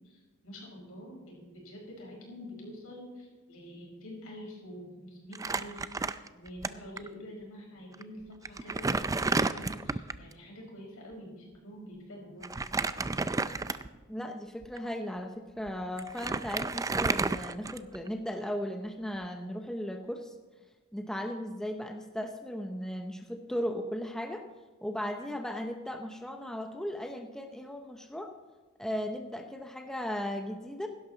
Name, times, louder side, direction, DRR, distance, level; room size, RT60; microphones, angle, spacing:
voice 1, 0.1-12.5, equal, 70° left, -1 dB, 5.5 m, -47 dB
Crumpling crinkling, 5.3-6.7 7.0-7.1 7.9-8.0 8.4-10.3 12.4-14.0 14.6-14.8 15.7-15.8 16.0-18.1, right 3 dB, 15° right, 0.4 m, -31 dB
voice 2, 14.1-20.3 20.9-24.4 24.8-28.3 28.8-30.9, equal, 5° left, 4 dB, 0.8 m, -36 dB
16.5 x 12.0 x 3.9 m, 1.3 s
head